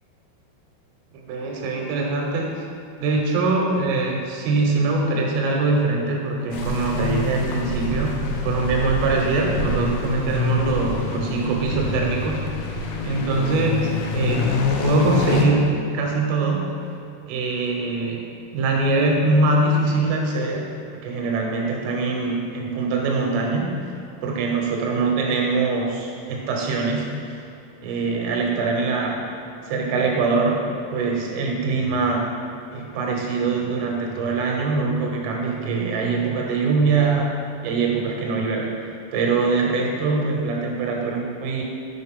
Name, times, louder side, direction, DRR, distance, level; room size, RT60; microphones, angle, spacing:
voice 1, 1.1-2.6 3.0-8.2 8.4-12.5 13.0-14.5 14.8-16.7 17.3-18.2 18.5-23.9 24.2-27.1 27.3-27.5 27.8-29.3 29.7-30.6 30.9-32.3 32.7-37.4 37.6-38.8 39.1-41.6, right 3 dB, 80° right, 0 dB, 3.5 m, -23 dB
sound 1, 6.5-15.4, left 3 dB, 80° left, 3.2 m, -25 dB
7.6 x 6.4 x 3.7 m, 2.5 s
omnidirectional pair, 5.9 m